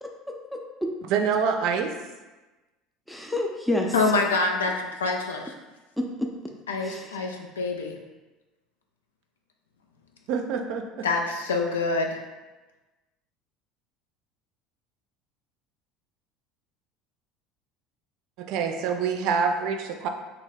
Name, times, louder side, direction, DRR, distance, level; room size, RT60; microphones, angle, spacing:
voice 1, 0.0-0.9 3.1-4.1 6.0-6.3 6.8-7.2, left 1 dB, 5° left, 1 dB, 0.4 m, -30 dB
voice 2, 1.1-1.9 10.3-11.1 18.4-20.1, right 6 dB, 65° right, 5 dB, 0.3 m, -26 dB
voice 3, 3.9-4.7 5.0-5.5 6.7-8.0 11.0-12.2, left 3 dB, 90° left, 2 dB, 0.3 m, -26 dB
2.7 x 2.1 x 3.9 m, 1.2 s
hypercardioid pair, 75°, 0 cm